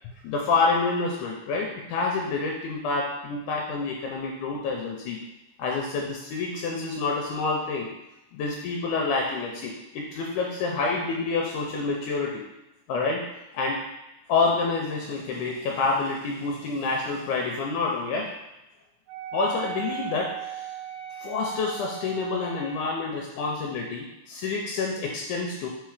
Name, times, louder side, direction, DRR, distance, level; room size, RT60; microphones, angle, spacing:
voice 1, 0.2-5.2 5.6-7.9 8.3-12.4 12.9-13.3 13.5-13.8 14.3-18.3 19.3-20.7 21.2-25.7, left 4 dB, 80° left, 0 dB, 2.0 m, -28 dB
Wind instrument woodwind instrument, 19.1-23.0, right 9 dB, 75° right, 1.7 m, -37 dB
4.7 x 4.5 x 4.8 m, 0.94 s
omnidirectional pair, 3.9 m